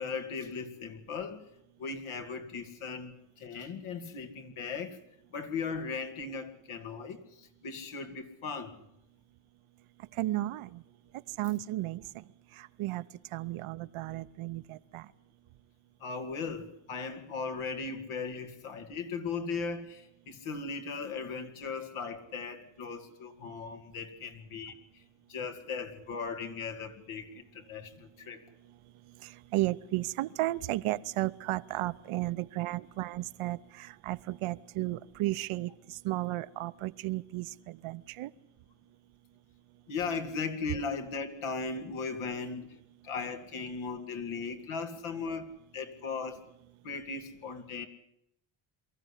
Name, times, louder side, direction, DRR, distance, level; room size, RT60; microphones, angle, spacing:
voice 1, 0.0-1.4 1.8-5.0 5.3-8.8 16.0-25.0 25.3-28.4 39.9-42.8 43.0-45.5 45.7-46.4 46.8-47.9, left 5 dB, 85° left, 2.5 m, -38 dB
voice 2, 10.2-10.8 11.4-12.0 12.6-13.0 13.3-15.1 29.2-38.3, right 17 dB, 85° right, 0.8 m, -34 dB
23.5 x 14.5 x 9.9 m
cardioid pair, 105°, 48 cm